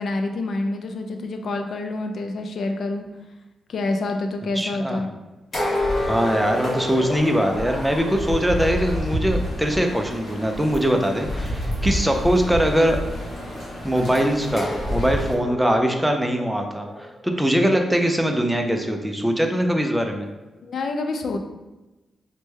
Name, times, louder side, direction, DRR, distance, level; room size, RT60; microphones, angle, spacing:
voice 1, 0.0-3.0 3.7-5.1 20.6-21.4, left 2 dB, 65° left, 5 dB, 0.4 m, -27 dB
voice 2, 4.5-5.1 6.0-13.0 13.8-20.3, equal, 5° right, 4 dB, 0.4 m, -22 dB
sound 1, 5.5-15.3, equal, 80° left, 0.9 m, -30 dB
sound 2, 5.5-8.2 14.1-18.2, left 1 dB, 30° left, 0.9 m, -30 dB
3.1 x 2.1 x 3.2 m, 1.1 s
cardioid pair, 90°, 0 cm